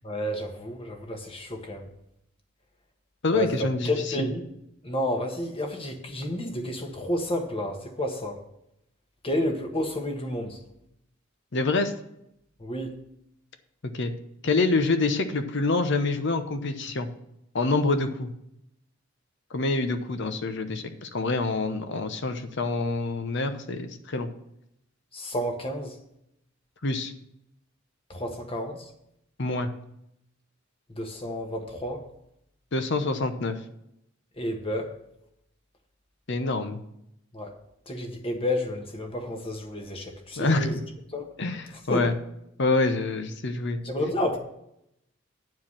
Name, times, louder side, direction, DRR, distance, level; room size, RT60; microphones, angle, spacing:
voice 1, 0.0-1.9 3.3-4.4 4.8-8.4 9.2-10.6 12.6-13.0 25.1-25.9 28.1-28.9 30.9-32.0 34.4-34.9 37.3-37.5 37.9-40.7 41.1-41.3 41.9-42.1 43.8-44.4, left 1 dB, 25° left, 4 dB, 1.4 m, -30 dB
voice 2, 3.2-3.9 4.2-4.3 11.5-11.9 13.9-14.1 14.4-17.1 17.5-18.3 19.5-24.3 26.8-27.1 29.4-29.7 32.7-33.6 36.3-36.8 40.4-40.8 41.4-42.1 42.6-43.8, left 3 dB, 60° left, 8 dB, 0.9 m, -26 dB
9.6 x 4.7 x 7.4 m, 0.78 s
head